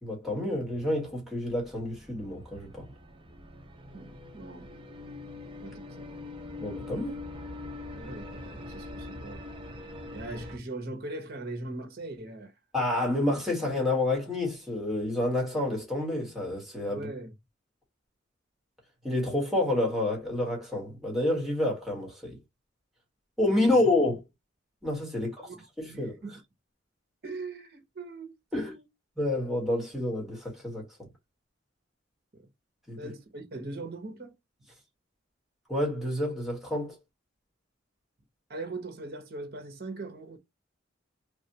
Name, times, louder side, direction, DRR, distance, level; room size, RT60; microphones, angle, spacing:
voice 1, 0.0-2.9 6.6-7.2 12.7-17.1 19.0-22.4 23.4-24.2 24.8-25.5 25.8-26.1 28.5-28.7 29.2-31.1 32.9-33.1 35.7-37.0, left 1 dB, ahead, 1.5 m, -29 dB
sound 1, 1.5-10.6, left 2 dB, 25° right, 0.6 m, -43 dB
voice 2, 3.9-4.7 5.6-6.1 7.9-9.5 10.1-12.5 16.9-17.3 23.6-23.8 25.2-25.7 25.9-26.4 27.2-28.9 32.3-32.5 33.0-34.3 38.5-40.4, right 2 dB, 55° right, 0.9 m, -40 dB
3.3 x 2.4 x 2.7 m
head